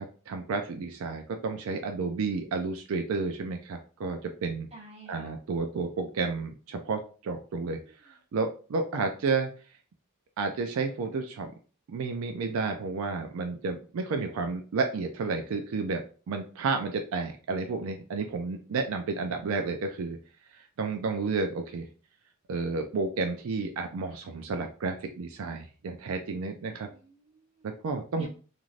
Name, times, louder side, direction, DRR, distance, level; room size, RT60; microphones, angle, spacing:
voice 1, 0.0-4.7 5.1-7.8 8.0-9.5 10.4-11.5 11.9-20.2 20.5-21.9 22.5-26.9 27.6-28.3, right 4 dB, 75° right, 5 dB, 0.4 m, -31 dB
voice 2, 4.7-5.3 7.8-8.2 26.9-27.8 28.2-28.3, right 2 dB, 30° right, -2 dB, 0.9 m, -51 dB
3.1 x 2.5 x 2.5 m, 0.37 s
head